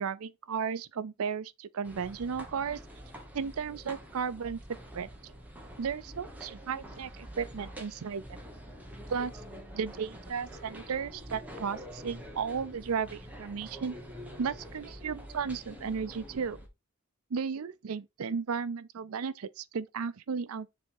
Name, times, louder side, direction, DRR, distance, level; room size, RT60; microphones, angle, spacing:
voice 1, 0.0-2.8 3.3-4.6 4.9-5.1 5.8-8.2 9.1-9.3 9.7-14.0 14.4-16.6 17.3-20.7, right 6 dB, 80° right, 0.5 m, -34 dB
sound 1, 1.8-16.7, equal, 5° right, 1.5 m, -46 dB
6.8 x 3.6 x 4.6 m
head